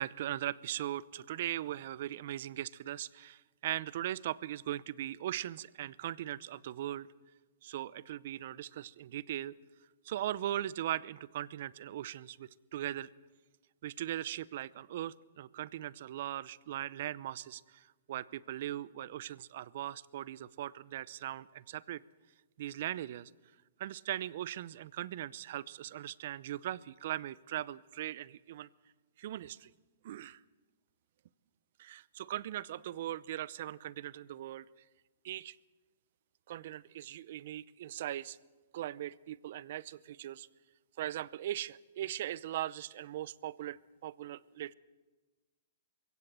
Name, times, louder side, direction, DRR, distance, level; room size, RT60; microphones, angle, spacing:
voice 1, 0.0-7.1 7.6-9.5 10.0-13.1 13.8-22.0 22.6-23.3 23.8-28.7 29.2-29.7 30.0-30.4 31.8-34.6 35.2-35.6 36.5-38.4 38.7-40.5 41.0-43.8 44.0-44.7, right 12 dB, 60° right, 21 dB, 0.7 m, -39 dB
22.5 x 16.5 x 7.5 m, 1.2 s
hypercardioid pair, 135°, 0 cm